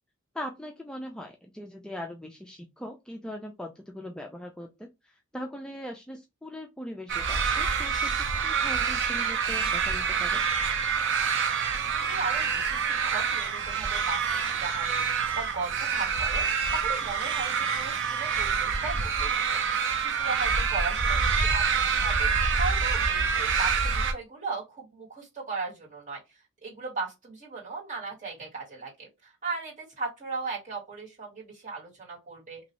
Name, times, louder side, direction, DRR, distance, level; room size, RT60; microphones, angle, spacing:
voice 1, 0.3-10.4, equal, 5° left, 2 dB, 0.3 m, -40 dB
sound 1, 7.1-24.1, right 6 dB, 60° right, 0.6 m, -27 dB
voice 2, 11.5-16.4 16.7-22.3 22.6-26.2 26.6-32.6, right 4 dB, 35° right, -5 dB, 1.9 m, -37 dB
2.9 x 2.6 x 3.0 m, 0.23 s
head